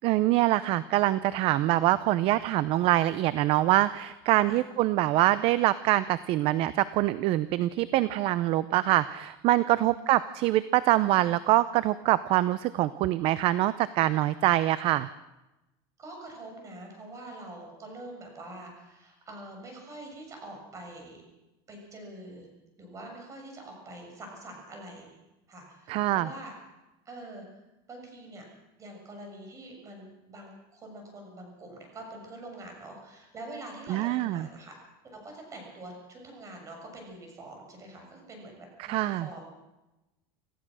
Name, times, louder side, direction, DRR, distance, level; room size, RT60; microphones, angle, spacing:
voice 1, 0.0-15.1 25.9-26.3 33.9-34.5 38.8-39.3, right 15 dB, 50° right, 16 dB, 0.6 m, -24 dB
voice 2, 9.6-10.0 16.0-21.2 21.7-22.5 22.8-25.2 25.5-26.5 27.0-27.5 27.9-28.4 28.8-34.8 35.0-39.6, right 1 dB, 25° right, 2 dB, 6.9 m, -45 dB
27.0 x 15.5 x 6.3 m, 1.0 s
supercardioid pair, 145°, 13 cm